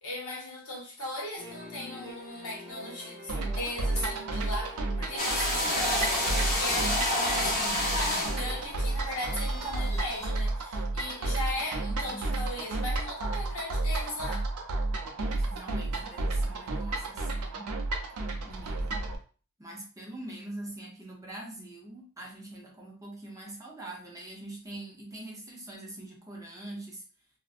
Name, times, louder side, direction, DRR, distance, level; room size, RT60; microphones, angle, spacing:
voice 1, 0.0-14.5, left 1 dB, 65° left, 1.1 m, -37 dB
sound 1, 1.4-8.6, equal, 10° left, 1.0 m, -47 dB
sound 2, 3.3-19.2, right 2 dB, 75° right, 0.5 m, -32 dB
sound 3, 5.2-10.3, left 1 dB, 40° left, 1.0 m, -30 dB
voice 2, 11.9-12.3 15.2-17.8 18.4-19.1 19.6-27.0, right 1 dB, 15° right, 0.6 m, -43 dB
2.5 x 2.1 x 2.4 m
head